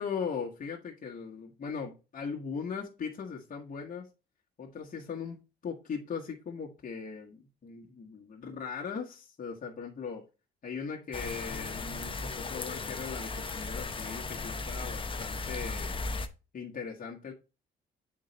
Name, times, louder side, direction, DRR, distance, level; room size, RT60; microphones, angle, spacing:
voice 1, 0.0-4.1 4.6-10.2 10.6-16.0 16.5-17.3, left 6 dB, 45° left, -2 dB, 1.3 m, -39 dB
sound 1, 11.1-16.3, left 3 dB, 25° left, 0.7 m, -36 dB
7.8 x 3.9 x 3.2 m, 0.30 s
cardioid pair, 90°, 20 cm